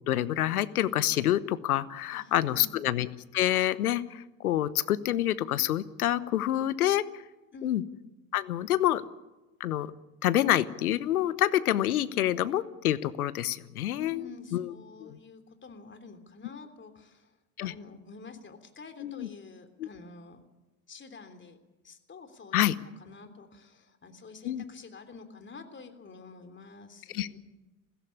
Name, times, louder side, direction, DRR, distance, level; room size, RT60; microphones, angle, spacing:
voice 1, 0.1-7.2 7.6-7.8 8.3-9.0 9.6-9.9 10.2-14.7 15.0-15.2 17.6-17.7 19.0-19.3 19.8-19.9 22.5-22.7 24.4-24.6 27.1-27.3, left 13 dB, 80° left, 17 dB, 1.0 m, -27 dB
voice 2, 2.1-2.9 7.5-7.8 14.0-17.3 17.6-20.4 20.9-21.6 21.8-22.6 23.0-27.4, left 4 dB, 25° left, 8 dB, 3.3 m, -48 dB
21.5 x 16.0 x 9.9 m, 1.1 s
hypercardioid pair, 75°, 43 cm